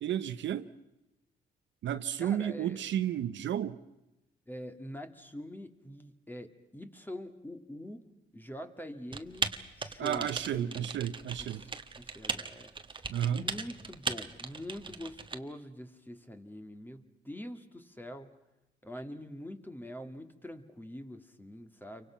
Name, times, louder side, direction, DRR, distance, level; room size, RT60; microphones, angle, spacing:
voice 1, 0.0-0.7 1.8-3.8 10.0-11.6 13.1-13.4, right 10 dB, 70° right, 0.9 m, -32 dB
voice 2, 2.2-2.9 4.5-8.1 8.3-9.5 9.8-10.9 11.4-18.3 18.8-22.1, left 1 dB, 10° left, 2.0 m, -45 dB
Typing, 9.1-15.4, right 4 dB, 25° right, 1.3 m, -38 dB
29.0 x 24.5 x 5.8 m
cardioid pair, 90°, 20 cm